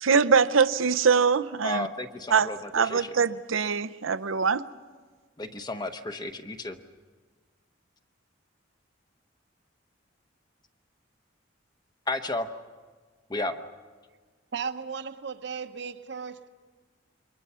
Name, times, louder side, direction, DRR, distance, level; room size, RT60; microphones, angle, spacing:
voice 1, 0.0-1.9 2.3-4.7, right 5 dB, 85° right, 0.7 m, -23 dB
voice 2, 1.6-3.1 5.4-6.8 12.1-12.5 13.3-13.6, left 2 dB, 20° left, 0.9 m, -33 dB
voice 3, 14.5-16.5, right 6 dB, 60° right, 1.0 m, -35 dB
28.0 x 23.5 x 5.6 m
head